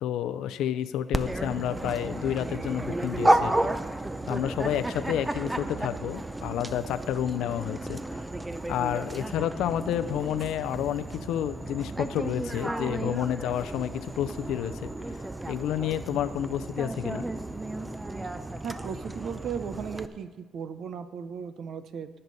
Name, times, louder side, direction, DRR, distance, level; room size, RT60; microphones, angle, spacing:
voice 1, 0.0-3.6 4.3-8.0 8.7-14.9 15.5-17.3, left 10 dB, 85° left, 13 dB, 0.5 m, -30 dB
Dog, 1.1-20.1, right 1 dB, 15° right, 0.6 m, -32 dB
voice 2, 18.6-22.1, right 7 dB, 65° right, 11 dB, 0.8 m, -36 dB
19.0 x 6.7 x 4.1 m, 1.4 s
cardioid pair, 90°, 0 cm